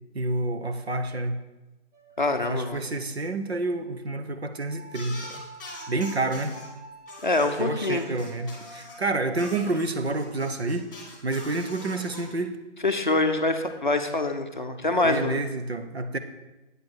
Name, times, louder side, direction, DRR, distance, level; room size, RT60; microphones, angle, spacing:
voice 1, 0.1-1.4 2.5-5.4 5.9-6.5 7.6-10.9 11.2-12.5 15.0-16.2, right 2 dB, 60° right, 7 dB, 0.9 m, -29 dB
sound 1, 1.9-2.6 4.7-9.8, right 1 dB, 85° right, 2.1 m, -47 dB
voice 2, 2.2-2.8 7.2-8.1 12.8-15.4, left 2 dB, 40° left, 5 dB, 0.6 m, -25 dB
sound 2, 4.9-6.7 7.1-9.0 9.3-12.2, left 2 dB, 15° left, 1.4 m, -43 dB
8.3 x 4.6 x 6.2 m, 1.1 s
figure-of-eight pair, 175°, 36 cm